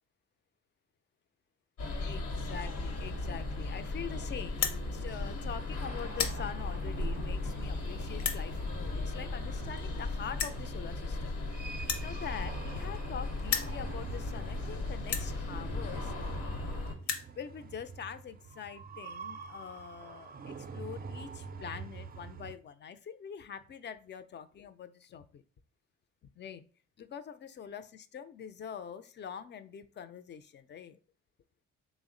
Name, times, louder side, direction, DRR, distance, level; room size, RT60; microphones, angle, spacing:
sound 1, 1.8-16.9, left 2 dB, 85° left, 1.1 m, -37 dB
voice 1, 2.0-4.7 4.9-11.4 11.8-16.1 17.4-25.4 26.4-26.6 27.0-31.0, left 7 dB, 40° left, 11 dB, 0.4 m, -44 dB
sound 2, 3.8-22.6, right 5 dB, 30° right, 0.4 m, -47 dB
sound 3, 4.5-4.8 5.5-5.7 6.0-6.4 7.1-7.2 8.1-8.4 9.5-9.6 9.8-9.9 10.4-10.6 11.8-13.1 13.4-13.7 14.4-14.5 15.0-15.3 16.2-16.3 16.5-16.6 16.9-17.3, left 7 dB, 65° left, 0.7 m, -34 dB
3.5 x 2.1 x 3.7 m, 0.40 s
cardioid pair, 90°, 30 cm